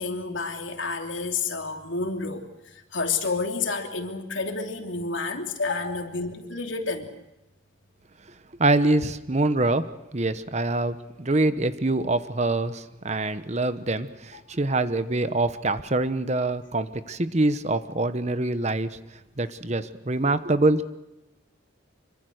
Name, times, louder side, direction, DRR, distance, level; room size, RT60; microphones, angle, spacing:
voice 1, 0.0-7.1 14.3-14.4, left 4 dB, 70° left, 4 dB, 3.0 m, -30 dB
voice 2, 8.6-19.0 19.4-20.9, right 2 dB, 35° right, 12 dB, 1.0 m, -25 dB
26.0 x 24.5 x 6.5 m, 0.99 s
head